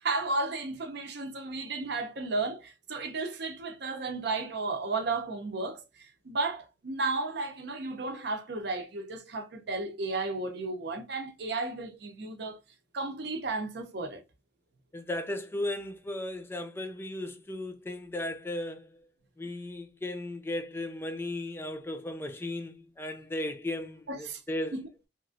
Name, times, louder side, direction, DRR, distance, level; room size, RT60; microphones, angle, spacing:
voice 1, 0.0-12.6 12.9-14.2 24.1-24.4 24.7-24.8, right 3 dB, 70° right, 0.6 m, -33 dB
voice 2, 14.9-19.0 19.4-24.8, left 1 dB, 15° left, 0.3 m, -36 dB
2.9 x 2.4 x 2.5 m
head